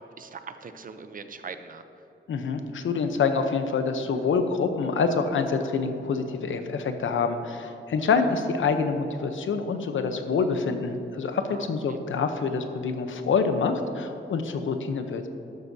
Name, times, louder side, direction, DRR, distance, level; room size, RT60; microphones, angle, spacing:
voice 1, 0.2-1.8 11.5-12.0, right 5 dB, 45° right, 9 dB, 0.6 m, -41 dB
voice 2, 2.3-15.2, left 5 dB, 80° left, 7 dB, 0.8 m, -26 dB
12.5 x 12.0 x 2.7 m, 3.0 s
wide cardioid pair, 155°, 20 cm